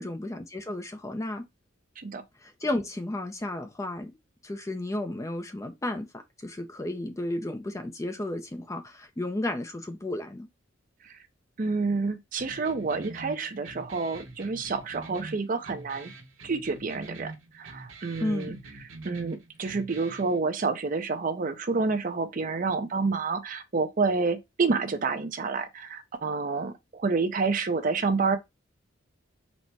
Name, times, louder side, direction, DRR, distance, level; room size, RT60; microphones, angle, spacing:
voice 1, 0.0-1.4 2.4-4.1 4.4-6.1 6.4-10.5 18.2-18.6, left 1 dB, 15° left, 0.4 m, -33 dB
voice 2, 11.6-16.1 16.4-17.3 17.6-18.6 19.0-28.4, right 4 dB, 45° right, 0.5 m, -28 dB
sound 1, 12.4-20.4, right 2 dB, 90° right, 1.0 m, -45 dB
4.1 x 2.1 x 4.5 m
head